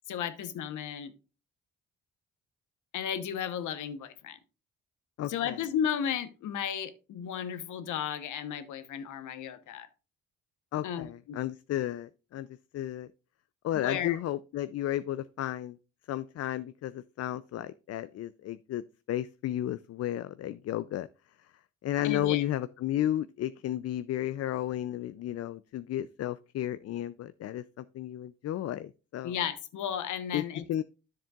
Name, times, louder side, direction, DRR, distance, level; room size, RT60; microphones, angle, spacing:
voice 1, 0.1-1.1 2.9-4.4 5.3-9.9 10.8-11.4 13.7-14.2 22.0-22.4 29.2-30.6, left 8 dB, 80° left, 1.1 m, -34 dB
voice 2, 5.2-5.6 10.7-12.5 12.7-13.1 13.6-15.8 16.1-21.1 21.8-29.4 30.3-30.4 30.7-30.8, left 12 dB, 55° left, 0.4 m, -33 dB
10.5 x 7.4 x 2.4 m
cardioid pair, 90°, 30 cm